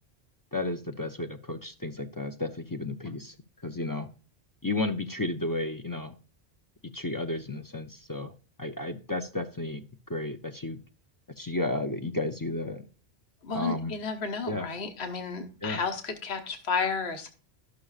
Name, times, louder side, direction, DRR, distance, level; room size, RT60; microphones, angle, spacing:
voice 1, 0.5-3.3 3.6-4.1 4.6-6.2 6.9-8.3 8.6-9.8 10.1-10.8 11.4-12.8 13.5-13.9 14.5-14.7 15.6-15.8, left 2 dB, 25° left, 7 dB, 0.5 m, -32 dB
voice 2, 13.4-17.3, left 5 dB, 75° left, 5 dB, 1.4 m, -32 dB
12.5 x 6.5 x 2.4 m, 0.37 s
omnidirectional pair, 1.1 m